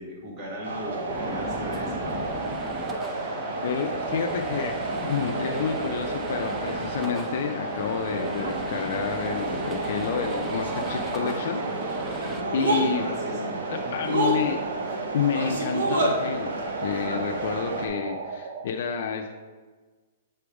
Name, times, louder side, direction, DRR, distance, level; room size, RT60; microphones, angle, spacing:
voice 1, 0.0-2.1 12.9-13.9, equal, 30° right, -4 dB, 1.6 m, -38 dB
sound 1, 0.6-17.9, right 2 dB, 75° right, 1.3 m, -31 dB
sound 2, 0.9-18.7, right 5 dB, 60° right, 0.6 m, -37 dB
sound 3, 1.1-12.4, equal, 10° right, 0.6 m, -38 dB
voice 2, 3.6-4.7 5.0-11.6 12.5-13.0 13.7-14.6 15.1-16.5 16.8-19.3, left 7 dB, 60° left, 3 dB, 0.5 m, -29 dB
7.8 x 3.4 x 4.9 m, 1.4 s
hypercardioid pair, 150°, 0 cm